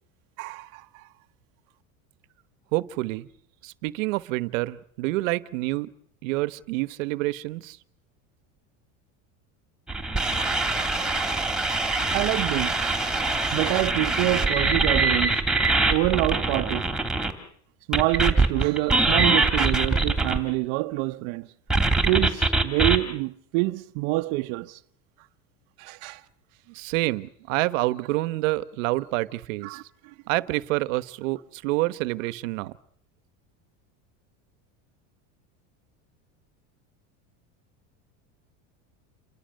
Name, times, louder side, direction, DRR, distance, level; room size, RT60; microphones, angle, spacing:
voice 1, 0.4-1.1 12.1-13.1 13.5-15.4 15.9-16.9 17.9-21.5 22.1-24.8 25.8-26.2 29.6-30.1, right 20 dB, 65° right, 1.0 m, -26 dB
voice 2, 2.7-3.3 3.6-5.9 6.2-7.8 26.7-29.8 30.3-32.7, right 19 dB, 85° right, 1.2 m, -27 dB
sound 1, 9.9-17.3 17.9-20.4 21.7-23.0, right 3 dB, ahead, 2.7 m, -23 dB
28.5 x 24.0 x 6.5 m
cardioid pair, 150°, 38 cm